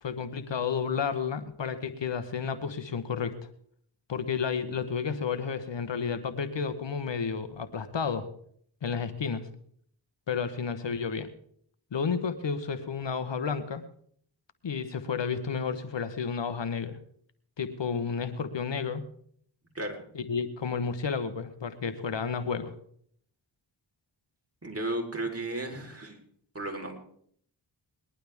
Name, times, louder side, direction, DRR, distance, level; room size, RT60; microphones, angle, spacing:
voice 1, 0.0-3.4 4.1-8.3 8.8-9.5 10.3-11.3 11.9-13.8 14.6-17.0 17.6-19.0 20.1-22.7, left 6 dB, 60° left, 11 dB, 1.2 m, -31 dB
voice 2, 24.6-26.2 26.5-27.0, right 1 dB, 30° right, 2 dB, 4.0 m, -34 dB
20.5 x 11.5 x 3.5 m, 0.63 s
cardioid pair, 40°, 50 cm